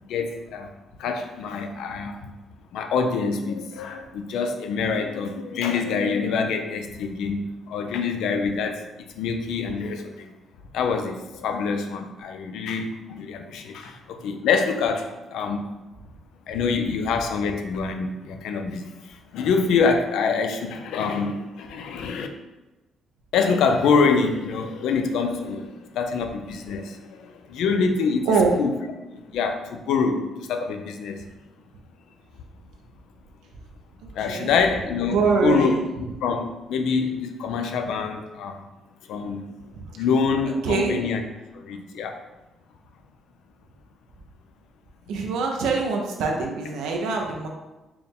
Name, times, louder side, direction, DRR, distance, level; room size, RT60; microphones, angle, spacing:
voice 1, 0.1-0.7 1.0-2.3 2.7-10.3 10.7-15.7 16.5-22.3 23.3-28.3 28.6-28.8 29.1-31.2 34.1-35.7 36.2-38.6 39.1-39.5 40.0-41.2 41.5-42.2, left 5 dB, 85° left, 5 dB, 0.4 m, -25 dB
voice 2, 28.3-28.6 34.3-34.5 35.1-35.8 39.7-39.9 40.6-41.0 45.1-47.5, right 4 dB, 90° right, 1 dB, 0.5 m, -23 dB
4.5 x 2.1 x 3.5 m, 1.1 s
cardioid pair, 90°, 0 cm